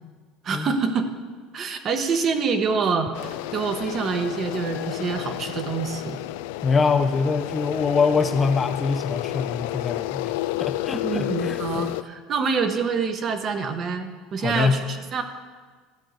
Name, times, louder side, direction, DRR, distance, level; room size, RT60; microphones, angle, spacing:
voice 1, 0.4-1.1 1.5-6.2 11.0-15.2, right 5 dB, 30° right, 8 dB, 0.8 m, -26 dB
sound 1, 3.1-12.0, left 15 dB, 85° left, 0.3 m, -31 dB
voice 2, 6.6-10.3 10.6-11.6 14.4-14.8, left 5 dB, 20° left, 8 dB, 0.4 m, -24 dB
13.0 x 5.3 x 7.7 m, 1.5 s
cardioid pair, 165°, 0 cm